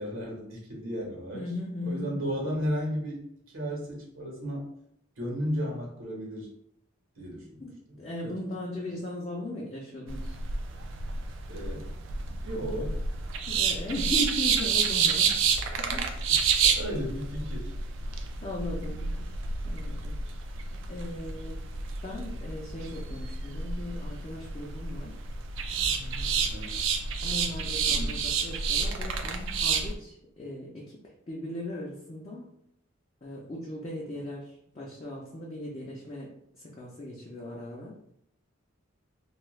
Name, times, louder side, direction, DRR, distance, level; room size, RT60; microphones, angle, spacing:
voice 1, 0.0-1.4 1.8-3.3 3.5-4.7 5.2-6.5 7.1-7.6 7.9-8.0 8.2-8.4 11.5-11.9 12.4-12.9 16.7-17.7 26.3-26.7 27.9-28.2, equal, 80° right, -1 dB, 1.1 m, -34 dB
voice 2, 1.3-2.3 7.6-10.3 13.5-15.3 15.8-16.4 18.4-19.4 19.6-20.2 20.9-21.6 22.0-25.1 25.8-26.4 27.2-32.5 33.2-38.0, left 1 dB, 30° left, -5 dB, 0.4 m, -38 dB
sound 1, 10.1-29.9, right 5 dB, 65° right, 0.4 m, -29 dB
2.7 x 2.4 x 3.1 m, 0.76 s
head